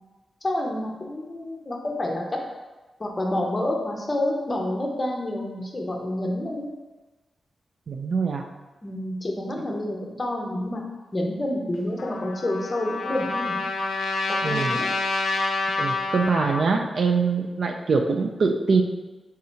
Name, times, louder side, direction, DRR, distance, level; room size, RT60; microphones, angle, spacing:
voice 1, 0.4-2.4 3.0-6.7 8.8-10.8 11.1-13.6 14.3-14.9, left 1 dB, 25° left, 0 dB, 0.6 m, -28 dB
voice 2, 7.9-8.4 14.4-14.8 15.8-18.8, right 4 dB, 55° right, 3 dB, 0.3 m, -23 dB
Trumpet, 12.0-16.7, left 3 dB, 80° left, 0.5 m, -27 dB
3.6 x 2.7 x 4.3 m, 1.2 s
wide cardioid pair, 150°, 0 cm